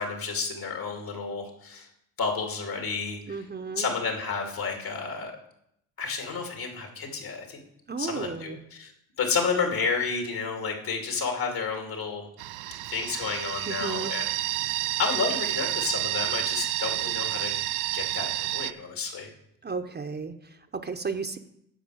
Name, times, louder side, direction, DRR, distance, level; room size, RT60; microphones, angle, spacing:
voice 1, 0.0-1.9 2.2-3.4 3.8-5.3 6.0-7.6 8.0-8.9 9.2-12.2 12.9-14.3 15.0-17.5 17.9-19.3, left 5 dB, 65° left, 3 dB, 2.6 m, -31 dB
voice 2, 3.3-3.9 7.9-8.6 13.7-14.2 19.6-21.4, right 4 dB, 25° right, 7 dB, 0.8 m, -34 dB
sound 1, 12.4-18.7, right 16 dB, 90° right, 0.5 m, -30 dB
10.0 x 4.8 x 7.8 m, 0.76 s
supercardioid pair, 75°, 38 cm